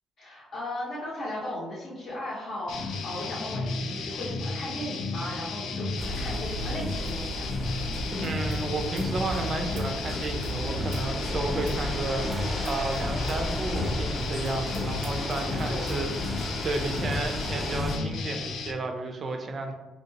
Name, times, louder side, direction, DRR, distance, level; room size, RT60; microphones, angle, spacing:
voice 1, 0.2-7.5 15.2-16.3, left 1 dB, 50° left, -7 dB, 0.8 m, -37 dB
sound 1, 2.7-18.7, left 3 dB, 70° left, 0.4 m, -33 dB
sound 2, 6.0-18.0, equal, 5° left, 0.7 m, -33 dB
sound 3, 7.1-7.3 7.6-12.9 13.2-13.5 13.9-14.0 14.4-16.0, right 4 dB, 85° right, 0.5 m, -52 dB
voice 2, 8.2-19.7, right 2 dB, 35° right, 4 dB, 0.4 m, -32 dB
2.9 x 2.8 x 2.7 m, 1.2 s
cardioid pair, 135°, 0 cm